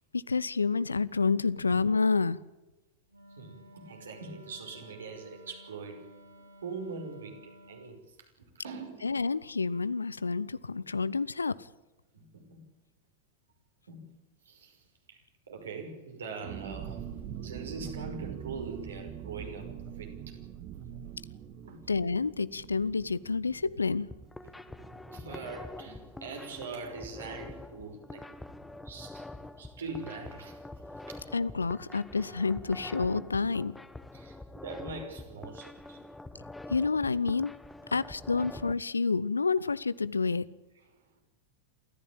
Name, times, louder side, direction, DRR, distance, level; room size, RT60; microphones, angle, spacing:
voice 1, 0.1-2.4 9.0-11.5 21.9-24.1 31.3-33.7 36.7-37.5 37.9-40.5, left 4 dB, 75° left, 19 dB, 0.8 m, -29 dB
Wind instrument woodwind instrument, 3.1-8.0, equal, 85° right, 3.5 m, -54 dB
voice 2, 3.4-6.0 6.6-9.1 12.1-12.6 13.9-14.1 14.5-14.8 15.1-15.2 15.5-17.0 17.3-19.7 20.0-20.4 21.7-21.8 25.1-28.3 28.9-29.2 29.6-30.6 31.1-31.2 34.1-36.0 38.4-38.5, right 4 dB, 65° right, 3 dB, 5.6 m, -42 dB
sound 1, 16.4-25.8 26.1-26.2 26.5-26.8, right 10 dB, 35° right, 1.8 m, -43 dB
sound 2, 24.1-38.7, left 2 dB, 5° left, 1.3 m, -45 dB
28.0 x 14.5 x 8.9 m, 1.1 s
figure-of-eight pair, 90°, 0 cm